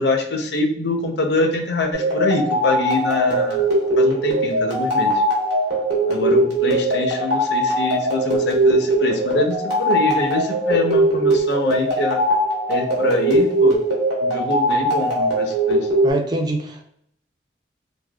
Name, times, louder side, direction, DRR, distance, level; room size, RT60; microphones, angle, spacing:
voice 1, 0.0-3.6 4.0-5.1 6.1-12.2 12.7-13.8 14.2-15.9, left 2 dB, 70° left, 4 dB, 0.5 m, -24 dB
sound 1, 1.9-16.1, right 1 dB, 70° right, 1.0 m, -20 dB
voice 2, 16.0-16.9, right 1 dB, 25° right, 2 dB, 0.4 m, -24 dB
3.3 x 2.0 x 2.2 m, 0.72 s
head